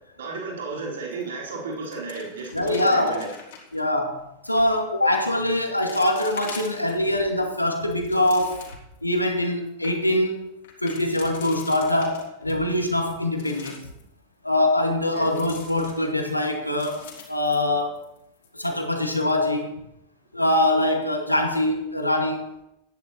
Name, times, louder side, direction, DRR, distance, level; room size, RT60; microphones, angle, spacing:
voice 1, 0.2-3.3 15.1-15.3, right 4 dB, 65° right, -3 dB, 4.2 m, -33 dB
sound 1, 1.1-1.5 1.7-3.8 4.5-4.8 5.4-5.5 5.9-7.2 7.7-9.0 9.4-9.5 9.7-9.9 10.6-12.6 13.0-14.0 15.2-16.3 16.7-18.2 18.4-18.5 19.0-19.3, left 6 dB, 55° left, 3.6 m, -44 dB
voice 2, 2.5-3.3 3.7-8.6 9.0-10.5 10.8-13.8 14.4-18.0 18.5-19.8 20.3-22.5, left 1 dB, 85° left, 3 dB, 2.0 m, -23 dB
14.0 x 10.5 x 4.4 m, 0.84 s
figure-of-eight pair, 90°, 0 cm